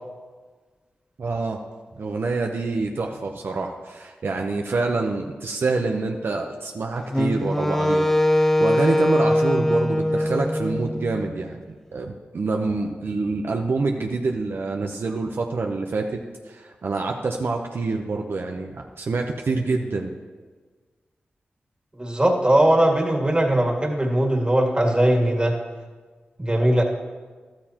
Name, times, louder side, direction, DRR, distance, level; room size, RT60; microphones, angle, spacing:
voice 1, 1.2-1.6 2.0-16.2 16.5-20.1, right 3 dB, 70° right, 2 dB, 0.7 m, -26 dB
Wind instrument woodwind instrument, 7.1-11.3, left 1 dB, 10° left, 0.6 m, -22 dB
voice 2, 22.0-25.6 26.4-26.8, right 1 dB, 25° right, 1 dB, 2.0 m, -20 dB
13.0 x 12.5 x 2.9 m, 1.4 s
cardioid pair, 45°, 4 cm